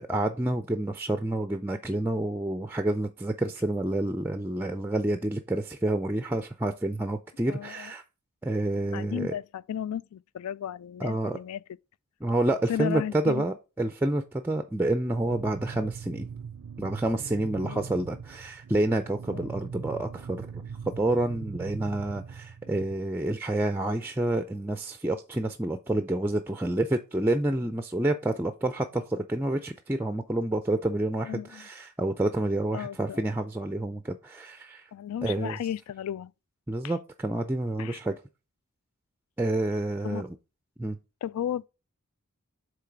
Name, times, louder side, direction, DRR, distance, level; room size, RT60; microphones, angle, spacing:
voice 1, 0.0-8.0 8.4-9.3 11.0-11.4 12.2-16.3 16.8-34.9 35.2-35.6 36.7-38.1 39.4-40.3 40.8-41.0, right 1 dB, 10° right, 0.4 m, -28 dB
voice 2, 7.5-7.9 8.9-11.6 12.7-13.4 17.6-17.8 19.3-19.5 31.2-31.7 32.7-33.3 34.9-36.3 37.8-38.0 40.0-40.2 41.2-41.6, left 9 dB, 85° left, 0.3 m, -34 dB
sound 1, 15.0-23.0, right 6 dB, 75° right, 0.4 m, -41 dB
7.7 x 3.3 x 4.5 m
head